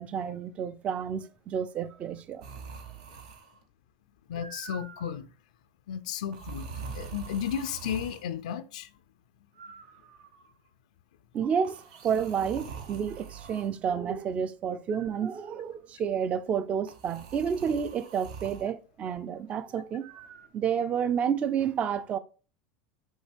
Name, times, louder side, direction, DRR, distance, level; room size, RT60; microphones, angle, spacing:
voice 1, 0.0-2.5 11.3-20.1 20.5-22.2, right 7 dB, 35° right, 0.4 m, -30 dB
sound 1, 2.4-3.6 4.3-5.2 6.3-8.3 9.6-10.5 11.6-13.7 14.9-15.6 16.9-18.7 20.0-20.5, right 6 dB, 80° right, 0.8 m, -44 dB
voice 2, 4.3-5.3 5.9-6.7 6.9-8.9, left 9 dB, 90° left, 0.4 m, -33 dB
5.3 x 2.9 x 3.4 m
supercardioid pair, 115°, 4 cm